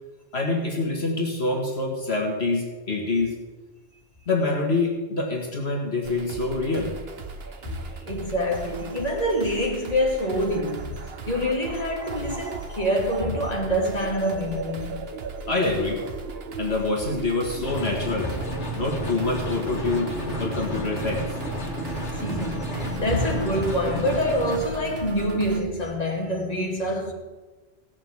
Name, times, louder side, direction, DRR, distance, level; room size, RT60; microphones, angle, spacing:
voice 1, 0.3-3.3 4.3-7.0 15.5-16.0 16.6-18.3 18.8-20.1 20.4-21.3, left 3 dB, 65° left, 2.1 m, -26 dB
sound 1, 6.0-25.6, right 4 dB, 60° right, 1.3 m, -36 dB
voice 2, 8.1-11.0 11.3-15.0 22.1-27.1, equal, 35° left, 2.6 m, -26 dB
sound 2, 17.6-24.6, equal, 80° left, 2.3 m, -32 dB
16.5 x 7.3 x 8.5 m
omnidirectional pair, 1.1 m